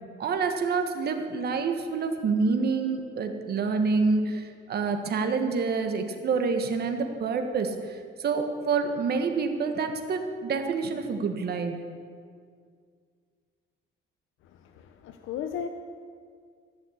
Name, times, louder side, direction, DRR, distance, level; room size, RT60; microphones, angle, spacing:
voice 1, 0.2-11.7, right 4 dB, 50° right, 5 dB, 1.5 m, -27 dB
voice 2, 14.4-15.7, left 8 dB, 75° left, 7 dB, 0.7 m, -36 dB
15.0 x 6.5 x 9.8 m, 2.1 s
cardioid pair, 135°, 21 cm